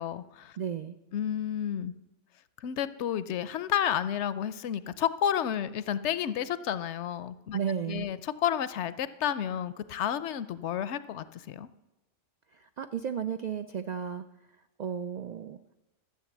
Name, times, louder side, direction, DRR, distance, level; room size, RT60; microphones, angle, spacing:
voice 1, 0.0-0.5 1.1-1.9 2.6-7.6 7.9-11.7, left 9 dB, 70° left, 15 dB, 0.8 m, -31 dB
voice 2, 0.6-1.0 7.5-8.1 12.5-14.2 14.8-15.6, right 8 dB, 75° right, 10 dB, 0.4 m, -33 dB
13.5 x 7.4 x 7.2 m, 1.0 s
omnidirectional pair, 1.3 m